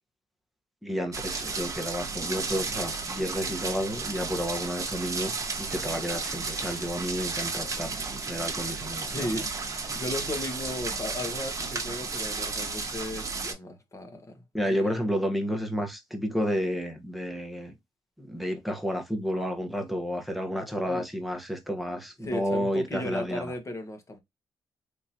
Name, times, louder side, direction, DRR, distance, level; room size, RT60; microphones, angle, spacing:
voice 1, 0.8-9.4 14.5-17.7 18.2-23.5, equal, ahead, 1.0 m, -31 dB
sound 1, 1.1-13.5, right 4 dB, 35° right, 1.0 m, -33 dB
voice 2, 9.1-9.5 9.9-14.4 14.7-15.0 20.9-21.0 22.2-24.2, left 1 dB, 35° left, 1.2 m, -35 dB
3.7 x 2.9 x 2.7 m
cardioid pair, 80°, 9 cm